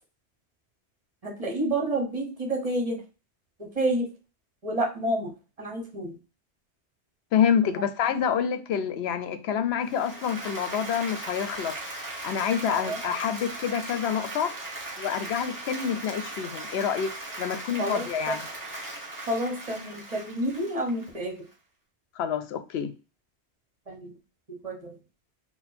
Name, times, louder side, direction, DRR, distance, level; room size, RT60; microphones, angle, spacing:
voice 1, 1.2-3.0 3.6-4.1 4.6-6.2 7.6-7.8 12.7-13.0 17.8-18.4 19.3-21.4 23.9-24.1 24.5-24.9, right 1 dB, 35° right, 1.1 m, -29 dB
voice 2, 7.3-14.5 15.0-17.1 17.4-18.5 22.2-22.9, left 8 dB, 75° left, 0.8 m, -27 dB
Applause, 9.8-21.5, right 2 dB, 20° right, 1.3 m, -38 dB
4.2 x 2.2 x 4.2 m
omnidirectional pair, 1.1 m